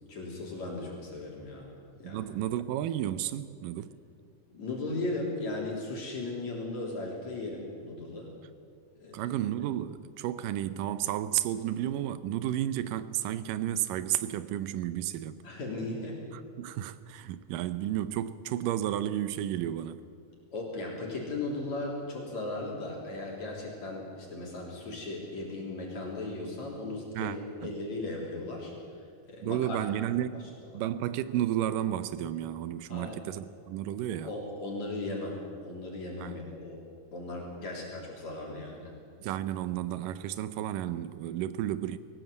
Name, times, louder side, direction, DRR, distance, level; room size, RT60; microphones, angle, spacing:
voice 1, 0.1-1.7 2.0-2.3 4.5-8.4 9.0-9.3 15.4-16.2 20.5-28.7 29.0-29.8 32.9-33.2 34.1-36.8 37.1-39.0, left 2 dB, 55° left, 4.6 m, -37 dB
voice 2, 2.0-3.9 9.1-15.4 16.3-20.0 27.2-27.4 27.7-27.8 29.4-30.4 30.7-34.3 36.2-36.4 39.2-42.0, right 12 dB, 90° right, 2.4 m, -32 dB
21.5 x 18.5 x 8.1 m
omnidirectional pair, 3.8 m